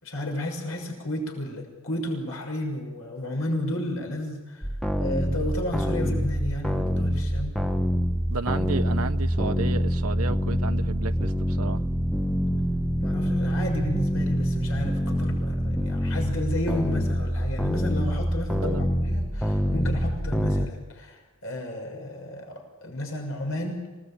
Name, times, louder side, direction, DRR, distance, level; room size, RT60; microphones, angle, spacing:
voice 1, 0.0-4.7 5.0-7.6 13.0-23.8, left 1 dB, 70° left, 2 dB, 6.5 m, -32 dB
sound 1, 4.6-20.7, equal, ahead, 1.3 m, -26 dB
voice 2, 8.3-11.3 11.6-11.8 18.6-18.8, right 4 dB, 90° right, 7 dB, 1.0 m, -32 dB
27.5 x 19.5 x 8.9 m, 1.2 s
head